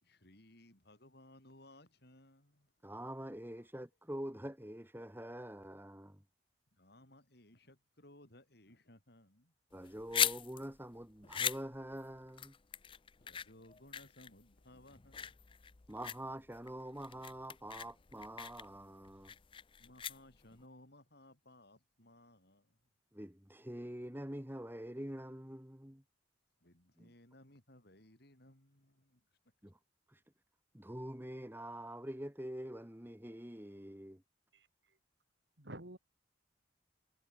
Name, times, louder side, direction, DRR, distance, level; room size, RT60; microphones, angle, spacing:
voice 1, 0.0-2.7 6.8-9.5 13.2-15.3 19.8-22.8 26.6-29.2, left 1 dB, 60° left, 6.1 m, -61 dB
voice 2, 2.8-6.2 9.7-12.5 15.9-19.3 23.1-26.0 27.0-27.1 29.6-29.8 30.1-30.2 30.7-34.2, right 1 dB, 10° right, 2.3 m, -45 dB
sound 1, 9.7-20.6, left 8 dB, 30° left, 0.5 m, -40 dB
voice 3, 34.5-35.0 35.6-36.0, right 1 dB, 65° right, 3.6 m, -50 dB
head